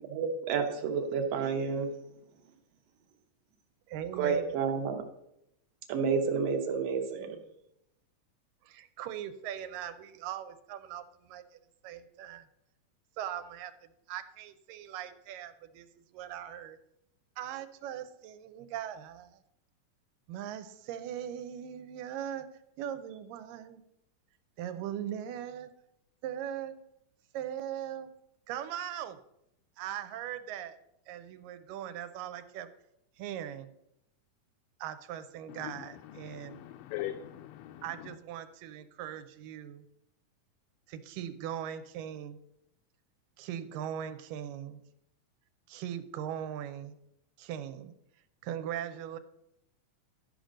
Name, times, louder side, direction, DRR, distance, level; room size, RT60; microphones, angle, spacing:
voice 1, 0.1-1.9 4.2-5.0 5.9-7.4, right 5 dB, 70° right, 5 dB, 1.6 m, -30 dB
voice 2, 3.9-4.6 8.6-11.4 11.8-12.5 13.2-13.7 14.1-15.9 16.1-16.8 17.4-19.4 20.3-22.5 22.8-23.8 24.6-25.7 26.2-26.7 27.3-28.1 28.5-29.2 29.8-30.8 31.1-32.7 33.2-33.7 34.8-36.6 37.8-39.9 40.9-42.4 43.4-44.8 45.7-47.0 47.4-47.9 48.4-49.2, right 10 dB, 85° right, 10 dB, 2.3 m, -39 dB
voice 3, 35.5-38.1, left 13 dB, 80° left, 5 dB, 2.1 m, -42 dB
12.5 x 5.2 x 6.3 m, 0.81 s
omnidirectional pair, 3.9 m